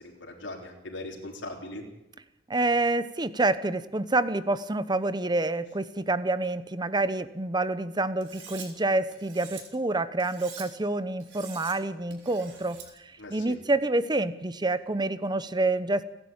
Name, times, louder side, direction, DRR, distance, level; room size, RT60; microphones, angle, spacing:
voice 1, 0.0-1.8 13.2-13.6, left 1 dB, 75° left, 0 dB, 3.9 m, -40 dB
voice 2, 2.5-12.8 13.3-16.0, right 2 dB, 25° right, 14 dB, 0.9 m, -27 dB
Cutlery silverware, 8.2-8.7 9.1-9.6 10.2-10.7 11.2-11.7 12.1-12.9, right 7 dB, 80° right, 4.9 m, -45 dB
29.5 x 11.0 x 8.9 m, 0.90 s
head